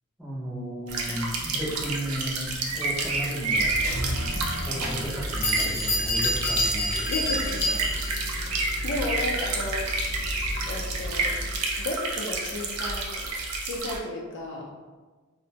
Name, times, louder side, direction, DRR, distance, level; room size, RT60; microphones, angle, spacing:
voice 1, 0.2-3.7 4.2-7.0, equal, ahead, -8 dB, 0.6 m, -34 dB
sound 1, 0.9-14.0, right 3 dB, 80° right, 0.4 m, -30 dB
sound 2, 3.5-11.6, left 1 dB, 40° right, 0.9 m, -34 dB
Bell, 5.4-8.2, left 1 dB, 80° left, 0.7 m, -28 dB
voice 2, 6.9-7.8 8.4-9.9 10.7-11.4 11.8-13.3 13.6-14.7, left 2 dB, 55° left, -1 dB, 0.4 m, -34 dB
2.5 x 2.1 x 2.8 m, 1.3 s
head